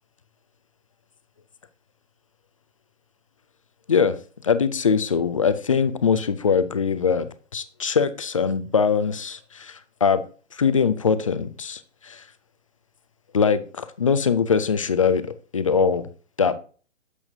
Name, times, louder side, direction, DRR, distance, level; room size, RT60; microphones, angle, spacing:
voice 1, 4.4-10.2 10.5-12.3 13.3-16.1 16.4-16.6, left 6 dB, 30° left, 0.4 m, -22 dB
11.0 x 7.1 x 2.7 m
hypercardioid pair, 150°, 37 cm